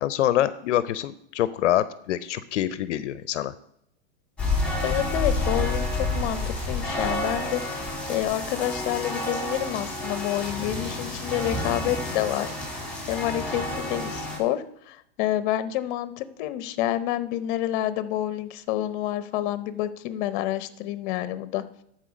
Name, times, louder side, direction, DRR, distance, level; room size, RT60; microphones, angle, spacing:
voice 1, 0.0-3.5, left 12 dB, 80° left, 14 dB, 0.6 m, -25 dB
sound 1, 4.4-14.4, left 2 dB, 5° left, 2.7 m, -29 dB
voice 2, 4.8-12.8 13.1-21.6, left 13 dB, 45° left, 13 dB, 0.8 m, -28 dB
11.5 x 4.5 x 5.1 m, 0.71 s
hypercardioid pair, 135°, 36 cm